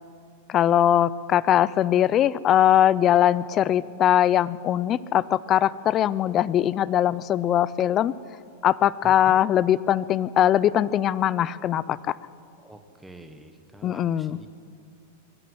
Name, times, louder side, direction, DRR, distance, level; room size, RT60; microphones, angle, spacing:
voice 1, 0.5-8.1 8.6-12.2 13.8-14.4, left 11 dB, 25° left, 19 dB, 0.4 m, -21 dB
voice 2, 9.0-9.5 12.6-14.5, right 2 dB, 5° right, 7 dB, 1.3 m, -45 dB
21.0 x 13.0 x 10.0 m, 2.4 s
supercardioid pair, 155°, 0 cm